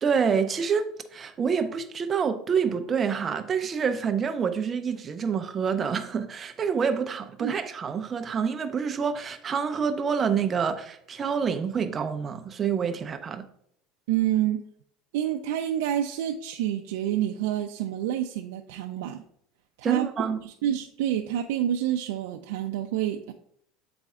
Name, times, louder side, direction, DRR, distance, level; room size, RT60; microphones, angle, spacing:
voice 1, 0.0-13.4 19.8-20.4, right 6 dB, 20° right, 0.4 m, -27 dB
voice 2, 14.1-14.6 15.1-19.2 19.8-20.1 20.4-23.3, right 11 dB, 80° right, 0.4 m, -28 dB
7.8 x 4.2 x 3.6 m
cardioid pair, 175°, 0 cm